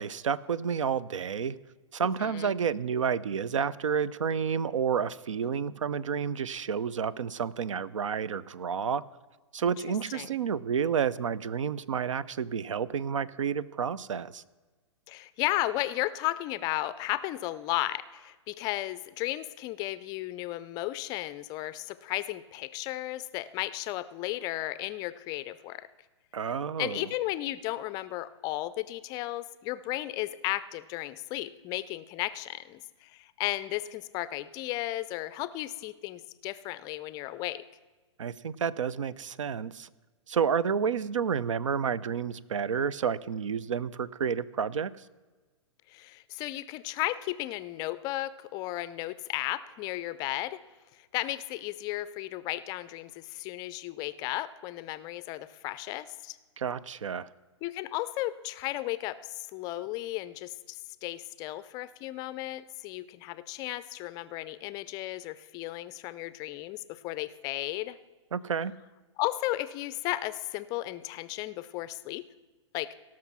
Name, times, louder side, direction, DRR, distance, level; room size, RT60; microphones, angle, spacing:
voice 1, 0.0-1.5 1.9-9.0 9.5-14.4 26.3-27.1 38.2-39.9 40.3-44.9 56.6-57.3 68.3-68.7, right 7 dB, 80° right, 19 dB, 0.5 m, -30 dB
voice 2, 2.2-2.5 5.4-5.5 9.6-9.7 10.1-10.3 15.1-25.9 26.8-37.6 45.9-50.6 51.1-56.4 57.6-68.0 69.2-72.3 72.7-72.9, left 16 dB, 25° left, 15 dB, 0.4 m, -34 dB
17.5 x 6.0 x 6.0 m, 1.3 s
hypercardioid pair, 130°, 16 cm